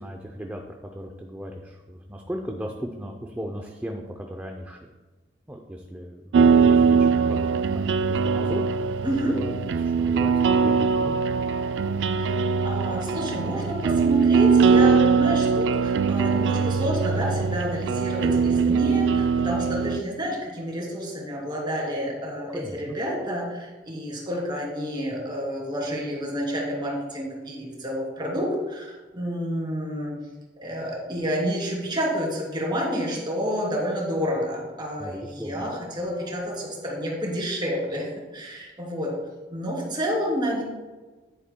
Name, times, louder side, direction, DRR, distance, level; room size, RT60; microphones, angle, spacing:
voice 1, 0.0-4.9 5.5-7.5 7.7-8.7 9.3-11.2 22.5-23.0 35.0-35.7, equal, 10° right, 2 dB, 0.5 m, -36 dB
sound 1, 6.3-20.0, right 5 dB, 70° right, 0.3 m, -21 dB
voice 2, 9.0-9.4 12.2-30.1 30.6-38.1 38.3-39.1 39.5-40.6, equal, 25° right, -3 dB, 2.8 m, -29 dB
10.0 x 8.7 x 2.2 m, 1.2 s
head